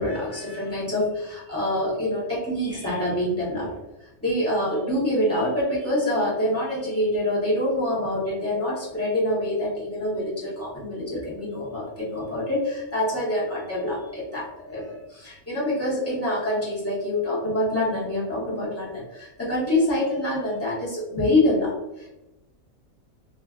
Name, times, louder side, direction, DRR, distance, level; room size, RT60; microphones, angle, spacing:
voice 1, 0.0-3.7 4.0-22.1, left 1 dB, 15° left, -7 dB, 0.5 m, -26 dB
2.5 x 2.3 x 2.3 m, 0.98 s
omnidirectional pair, 1.5 m